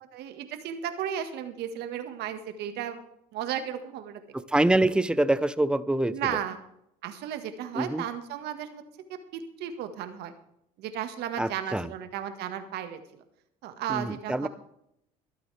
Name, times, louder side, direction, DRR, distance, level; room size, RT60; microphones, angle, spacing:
voice 1, 0.1-3.0 3.3-4.2 6.1-6.6 7.0-8.8 9.1-10.3 10.8-13.0 13.6-14.5, right 10 dB, 70° right, 8 dB, 1.7 m, -34 dB
voice 2, 4.3-6.4 7.7-8.0 11.4-11.9 13.9-14.5, right 1 dB, 5° right, 15 dB, 0.8 m, -25 dB
23.5 x 8.5 x 3.4 m, 0.78 s
hypercardioid pair, 70°, 18 cm